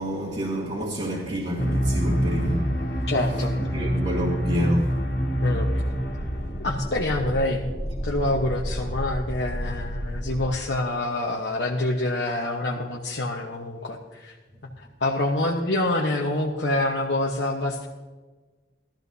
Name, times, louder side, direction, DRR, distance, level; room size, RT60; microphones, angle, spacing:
voice 1, 0.0-2.7 3.7-4.9, equal, 40° right, 1.6 m, -28 dB
sound 1, 1.6-10.6, equal, 65° left, 1.8 m, -27 dB
voice 2, 3.1-3.5 5.4-5.7 6.6-7.6 8.0-14.3 14.8-17.9, left 1 dB, 85° left, 1.0 m, -26 dB
16.0 x 13.0 x 2.7 m
head